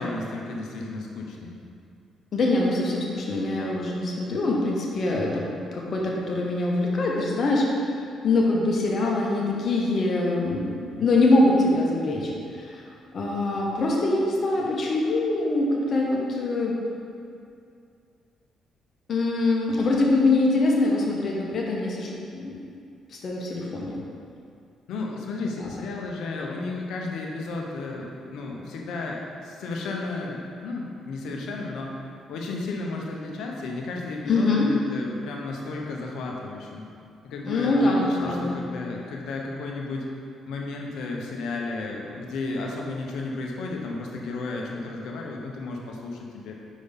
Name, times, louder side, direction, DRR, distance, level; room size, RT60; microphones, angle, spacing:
voice 1, 0.0-1.6 14.6-14.7 24.9-32.0 32.3-36.9 37.2-40.1 40.5-46.5, left 3 dB, 75° left, -1 dB, 0.8 m, -33 dB
voice 2, 2.3-7.7 8.2-12.8 13.1-16.7 19.1-22.6 23.2-24.0 25.6-25.7 34.3-34.7 37.4-38.6, left 2 dB, 55° left, -2 dB, 1.1 m, -23 dB
5.2 x 5.1 x 4.1 m, 2.4 s
hypercardioid pair, 50°, 0 cm